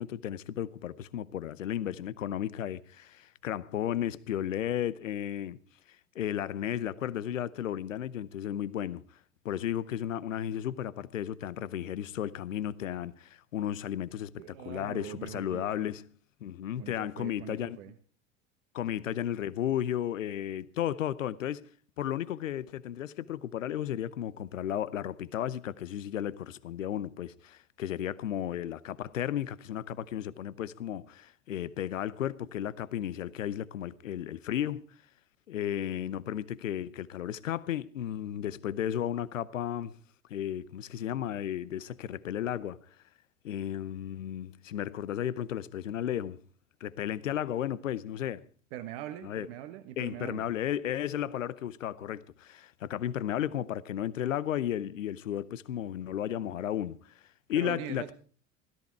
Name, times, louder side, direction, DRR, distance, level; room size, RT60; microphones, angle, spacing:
voice 1, 0.0-5.6 6.1-9.1 9.4-16.0 16.4-17.8 18.7-21.7 22.0-34.8 35.5-40.0 40.3-42.8 43.4-46.4 46.8-48.4 49.2-49.5 50.0-57.0 57.5-58.1, left 11 dB, 75° left, 0.8 m, -34 dB
voice 2, 14.4-15.9 16.8-17.9 48.7-50.5 57.5-58.1, right 12 dB, 55° right, 1.3 m, -42 dB
16.5 x 14.0 x 4.6 m
figure-of-eight pair, 75°, 39 cm